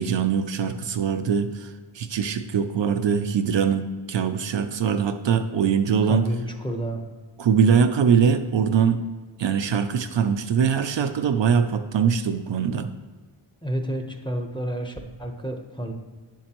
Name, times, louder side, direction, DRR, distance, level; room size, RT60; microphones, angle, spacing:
voice 1, 0.0-3.8 4.1-6.2 7.4-9.0 9.4-12.9, right 7 dB, 65° right, 8 dB, 0.5 m, -22 dB
voice 2, 6.1-7.0 13.6-15.9, right 1 dB, 10° left, 3 dB, 0.9 m, -30 dB
9.6 x 7.3 x 3.0 m, 1.4 s
wide cardioid pair, 95°, 49 cm